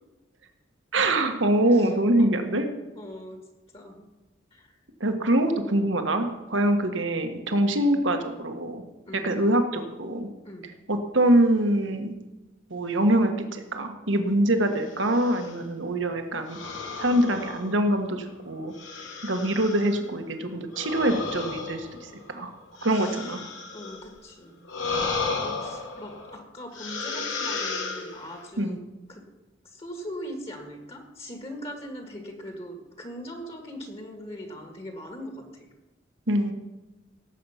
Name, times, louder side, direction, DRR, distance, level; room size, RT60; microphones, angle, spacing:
voice 1, 0.9-2.7 5.0-8.8 9.1-10.3 10.9-12.2 12.7-16.6 17.0-18.7 19.2-22.5 22.8-23.4 28.6-28.8 36.3-36.5, right 1 dB, 75° right, 6 dB, 1.5 m, -24 dB
voice 2, 3.0-3.4 3.7-4.1 4.5-4.7 9.1-9.4 10.5-10.7 17.0-17.3 23.0-23.1 23.7-24.7 25.4-28.8 29.1-29.2 29.6-35.7, equal, 30° left, 3 dB, 1.9 m, -40 dB
sound 1, 14.9-15.6 16.5-18.1 18.7-20.0 20.7-24.1 24.6-26.3 26.7-28.5, left 4 dB, 75° left, 2.5 m, -34 dB
17.5 x 7.7 x 5.8 m, 1.1 s
head